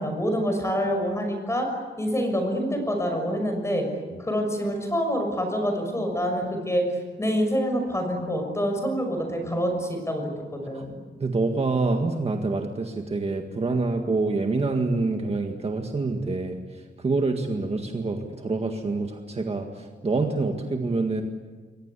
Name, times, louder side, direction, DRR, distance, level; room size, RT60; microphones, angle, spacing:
voice 1, 0.0-1.7 2.0-3.9 4.2-6.8 7.2-11.0, equal, 15° left, 4 dB, 6.4 m, -26 dB
voice 2, 11.2-16.6 17.0-21.2, right 3 dB, 30° right, 3 dB, 1.8 m, -26 dB
28.5 x 23.0 x 8.4 m, 1.4 s
wide cardioid pair, 180°, 19 cm